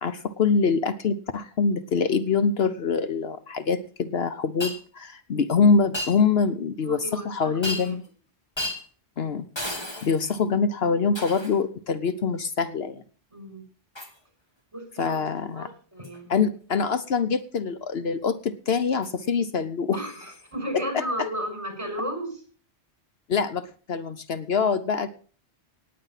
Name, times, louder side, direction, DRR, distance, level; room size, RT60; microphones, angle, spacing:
voice 1, 0.0-8.0 9.2-9.5 10.0-13.0 15.0-15.7 16.3-20.0 20.7-21.0 23.3-25.1, left 5 dB, 65° left, 12 dB, 1.1 m, -24 dB
Shatter, 4.6-4.8 5.9-6.2 7.6-8.1 8.6-8.8 9.6-10.4 11.1-11.6 14.0-14.2 15.1-15.3 16.0-16.2 19.0-19.1 20.2-20.3, left 1 dB, 25° left, 2.4 m, -33 dB
voice 2, 6.8-7.9 13.3-13.6 14.7-15.3 15.5-16.5 19.9-22.4, equal, 30° right, 4 dB, 6.3 m, -34 dB
18.5 x 8.8 x 5.7 m, 0.41 s
omnidirectional pair, 1.1 m